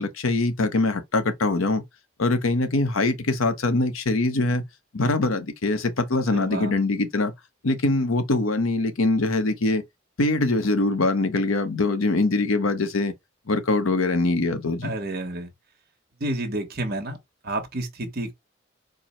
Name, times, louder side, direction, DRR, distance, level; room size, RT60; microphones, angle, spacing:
voice 1, 0.0-1.8 2.2-4.6 4.9-7.3 7.6-9.8 10.2-13.1 13.5-14.9, left 2 dB, 90° left, 0.9 m, -23 dB
voice 2, 6.3-6.7 14.8-15.5 16.2-17.2 17.4-18.3, right 1 dB, 50° right, 1.2 m, -30 dB
4.5 x 2.1 x 4.4 m
head